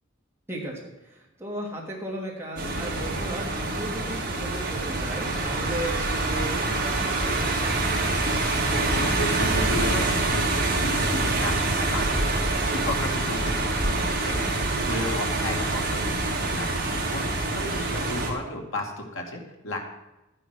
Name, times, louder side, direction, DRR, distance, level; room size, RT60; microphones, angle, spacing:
voice 1, 0.5-7.4 13.5-13.7, right 1 dB, 10° right, -3 dB, 2.8 m, -36 dB
sound 1, 2.6-18.3, right 2 dB, 45° right, 3.0 m, -26 dB
voice 2, 8.5-12.2 12.6-19.8, left 1 dB, 85° left, 1 dB, 2.5 m, -34 dB
13.0 x 10.0 x 6.3 m, 0.97 s
head